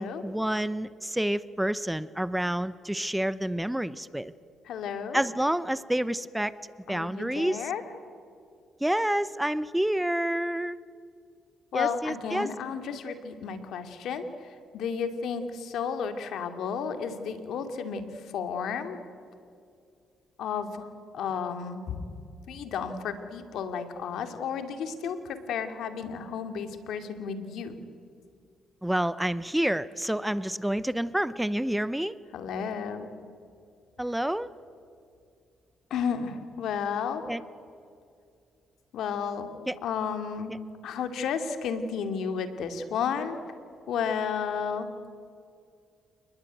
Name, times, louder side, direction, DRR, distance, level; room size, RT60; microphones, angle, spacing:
voice 1, 0.0-4.3 5.1-6.5 6.9-7.7 8.8-10.8 11.7-12.5 28.8-32.2 34.0-34.5 37.3-37.4 39.7-39.8, right 1 dB, 5° right, 16 dB, 0.7 m, -28 dB
voice 2, 4.7-5.2 6.9-7.8 11.7-19.0 20.4-20.9 21.1-22.0 22.5-27.8 32.3-33.1 35.9-37.2 38.9-39.5 39.8-40.6 40.8-43.4 43.9-44.9, left 6 dB, 75° left, 7 dB, 2.6 m, -32 dB
29.0 x 20.5 x 9.4 m, 2.4 s
cardioid pair, 90°, 0 cm